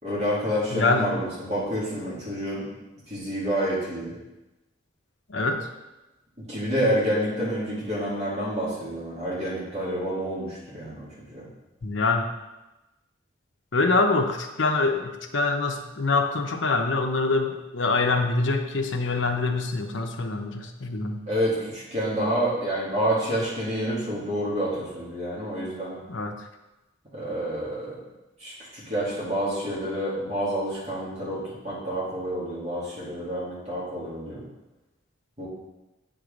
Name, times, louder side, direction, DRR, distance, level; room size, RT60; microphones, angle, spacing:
voice 1, 0.0-2.7 3.1-4.1 6.5-11.4 21.3-26.0 27.1-27.9 28.4-34.4 35.4-35.5, equal, 35° right, -9 dB, 2.6 m, -28 dB
voice 2, 0.7-1.1 5.3-5.7 11.8-12.3 13.7-21.2 26.1-26.3, left 3 dB, 80° left, 4 dB, 0.7 m, -25 dB
7.9 x 3.9 x 5.1 m, 1.0 s
head